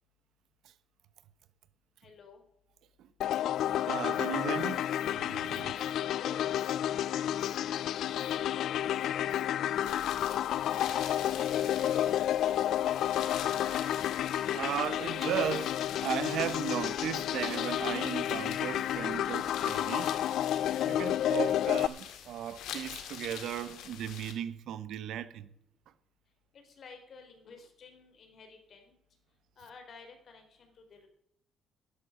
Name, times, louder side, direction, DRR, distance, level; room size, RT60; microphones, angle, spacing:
voice 1, 2.0-2.4 5.4-5.7 6.0-9.9 10.3-13.4 26.5-28.9 29.6-31.1, left 4 dB, 45° left, 3.6 m, -53 dB
sound 1, 3.2-21.9, left 11 dB, 65° left, 0.4 m, -31 dB
Stream, 3.5-14.1, right 3 dB, 20° right, 3.8 m, -63 dB
voice 2, 3.9-5.7 14.5-15.7 16.0-20.1 20.8-25.5, right 10 dB, 70° right, 1.0 m, -36 dB
sound 2, 9.9-24.3, left 9 dB, 85° left, 2.0 m, -45 dB
12.0 x 12.0 x 5.0 m
cardioid pair, 125°, 0 cm